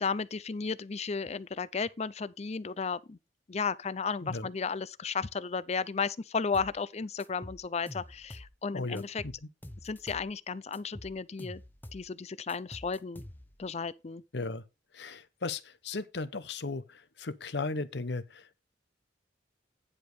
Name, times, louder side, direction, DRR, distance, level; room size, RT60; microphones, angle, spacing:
voice 1, 0.0-3.2 3.5-9.2 9.8-11.6 11.9-13.2 13.6-14.2, left 5 dB, 35° left, 0.5 m, -34 dB
sound 1, 6.5-6.8 7.2-8.6 9.0-10.3 10.7-12.1 12.5-13.7, left 1 dB, 10° left, 0.8 m, -47 dB
voice 2, 8.7-9.3 14.3-14.6 14.9-18.6, left 3 dB, 65° left, 0.9 m, -36 dB
9.9 x 5.1 x 4.8 m
head